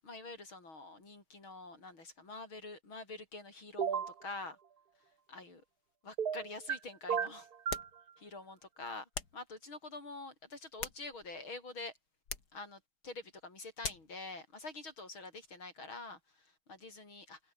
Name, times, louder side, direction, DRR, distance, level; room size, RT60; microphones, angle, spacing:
voice 1, 0.0-4.6 5.3-5.6 6.0-7.5 8.2-11.9 12.5-17.4, left 3 dB, 75° left, 7.1 m, -47 dB
sound 1, 3.8-4.1 6.2-6.8 7.1-7.9, right 7 dB, 50° right, 1.8 m, -33 dB
sound 2, 7.7-8.0 9.1-9.5 10.5-11.4 12.3-12.6 13.8-14.2, left 5 dB, 50° left, 3.0 m, -42 dB
open air
omnidirectional pair, 2.2 m